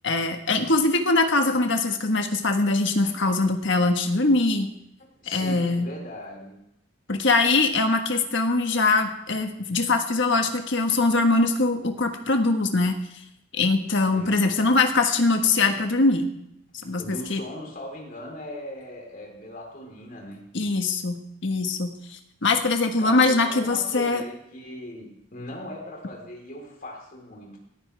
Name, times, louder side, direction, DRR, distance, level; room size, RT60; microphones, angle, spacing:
voice 1, 0.0-4.7 5.3-5.9 7.1-13.0 13.5-16.3 16.8-17.4 20.5-21.9 22.4-24.2, left 3 dB, 60° left, 5 dB, 1.5 m, -22 dB
voice 2, 5.0-6.6 14.1-14.5 17.0-20.4 23.0-27.6, left 1 dB, 40° left, -1 dB, 4.0 m, -39 dB
18.0 x 14.0 x 3.5 m, 0.81 s
head